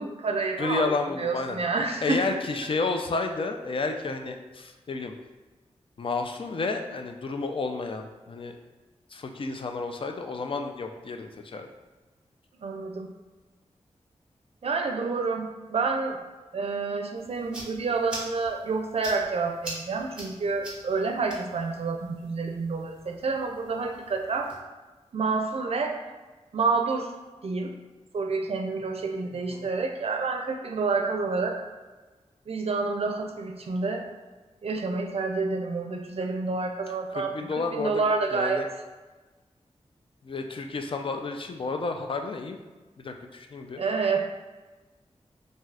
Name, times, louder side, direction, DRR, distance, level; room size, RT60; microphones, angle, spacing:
voice 1, 0.0-2.4 12.6-13.1 14.6-16.2 16.5-24.5 25.1-26.0 26.5-27.1 27.4-27.7 28.1-31.6 32.5-34.1 34.6-38.6 43.8-44.2, right 4 dB, 60° right, 3 dB, 0.4 m, -28 dB
voice 2, 0.6-1.6 2.0-5.1 6.0-8.6 9.1-11.7 29.5-29.7 37.1-38.0 38.3-38.7 40.2-42.6 43.0-43.8, left 3 dB, 50° left, 4 dB, 0.4 m, -31 dB
sound 1, 17.2-24.6, right 1 dB, 10° right, 1.1 m, -44 dB
2.7 x 2.3 x 3.2 m, 1.3 s
cardioid pair, 55°, 12 cm